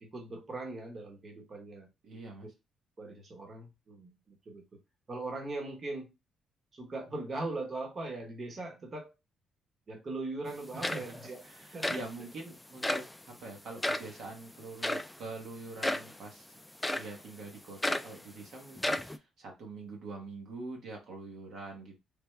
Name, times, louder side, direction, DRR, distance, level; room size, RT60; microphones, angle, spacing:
voice 1, 0.0-1.9 3.0-4.8 5.1-6.1 6.7-9.1 9.9-11.4 11.7-12.0, right 2 dB, 40° right, 1.0 m, -40 dB
voice 2, 2.0-2.5 10.7-16.6 16.9-22.0, right 3 dB, 70° right, 1.0 m, -45 dB
sound 1, 10.5-10.6 10.8-11.3 11.8-12.1 12.8-13.1 13.8-14.1 14.8-15.1 15.8-16.1 16.8-17.2 17.8-18.2 18.8-19.2, left 1 dB, 10° left, 0.3 m, -32 dB
3.4 x 2.2 x 3.2 m
cardioid pair, 90°, 0 cm